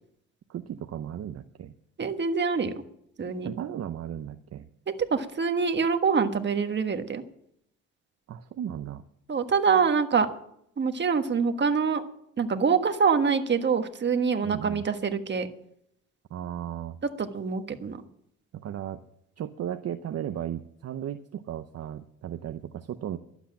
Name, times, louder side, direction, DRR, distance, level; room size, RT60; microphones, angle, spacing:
voice 1, 0.5-1.7 3.4-4.7 8.3-9.0 14.4-14.9 16.3-17.0 18.5-19.0 19.4-23.2, right 10 dB, 55° right, 9 dB, 0.7 m, -35 dB
voice 2, 2.0-2.7 3.2-3.5 5.0-7.2 9.3-10.3 10.8-12.0 12.4-15.5 17.2-18.0, right 5 dB, 35° right, 7 dB, 1.4 m, -25 dB
12.0 x 8.2 x 8.6 m, 0.73 s
cardioid pair, 90°, 30 cm